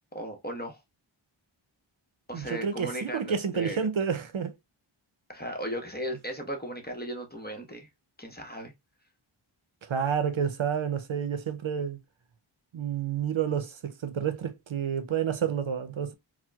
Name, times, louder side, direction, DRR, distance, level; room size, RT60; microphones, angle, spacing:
voice 1, 0.1-0.8 2.3-3.8 5.3-7.9 8.2-8.7, equal, 20° left, 0.9 m, -36 dB
voice 2, 2.3-4.5 9.8-12.0 12.7-16.1, right 7 dB, 65° right, 0.6 m, -29 dB
4.3 x 2.1 x 2.2 m
wide cardioid pair, 40°, 50 cm